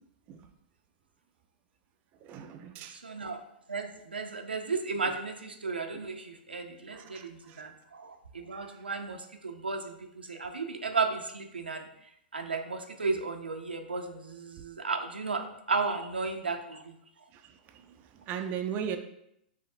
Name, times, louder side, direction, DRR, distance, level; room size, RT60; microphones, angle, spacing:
voice 1, 2.2-3.0 6.9-7.6 18.3-19.0, right 8 dB, 35° right, 6 dB, 0.4 m, -37 dB
voice 2, 2.9-3.4 3.7-11.9 12.3-16.9, right 4 dB, 90° right, 5 dB, 0.5 m, -34 dB
5.4 x 3.4 x 2.6 m, 0.76 s
hypercardioid pair, 110°, 5 cm